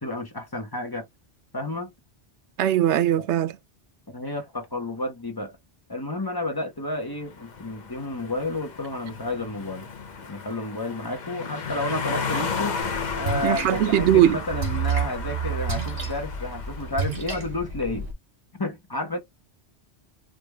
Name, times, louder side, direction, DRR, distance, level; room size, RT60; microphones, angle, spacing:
voice 1, 0.0-1.1 1.5-1.9 3.2-3.3 4.1-5.6 5.9-9.9 10.2-12.8 13.1-18.1 18.6-19.2, left 2 dB, 20° left, 1.0 m, -31 dB
voice 2, 2.6-3.5 13.4-14.4, right 11 dB, 80° right, 0.9 m, -20 dB
sound 1, 7.0-17.3, left 5 dB, 45° left, 0.9 m, -34 dB
Splash splatter, 12.8-18.1, right 6 dB, 60° right, 1.8 m, -30 dB
5.0 x 2.6 x 3.3 m
omnidirectional pair, 1.2 m